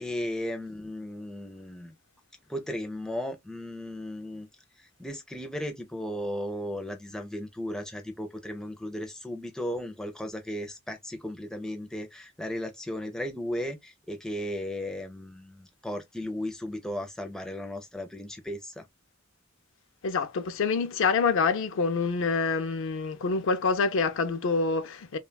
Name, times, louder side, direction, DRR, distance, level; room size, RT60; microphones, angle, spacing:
voice 1, 0.0-1.9 2.5-4.5 4.8-18.9, left 1 dB, 5° left, 0.4 m, -35 dB
voice 2, 20.0-25.2, left 4 dB, 65° left, 0.4 m, -26 dB
3.1 x 2.2 x 2.2 m
head